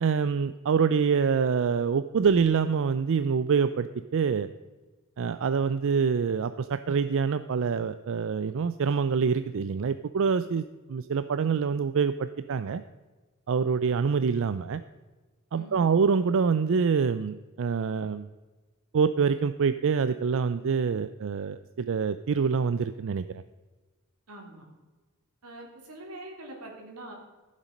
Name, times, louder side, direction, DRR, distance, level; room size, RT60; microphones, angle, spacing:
voice 1, 0.0-3.9 4.1-4.5 5.2-12.8 13.5-14.8 15.5-18.3 18.9-23.4, right 6 dB, 60° right, 12 dB, 0.4 m, -26 dB
voice 2, 15.5-15.9 24.3-24.6 25.4-27.1, right 1 dB, 90° right, 0 dB, 3.3 m, -44 dB
14.5 x 7.3 x 5.2 m, 1.3 s
head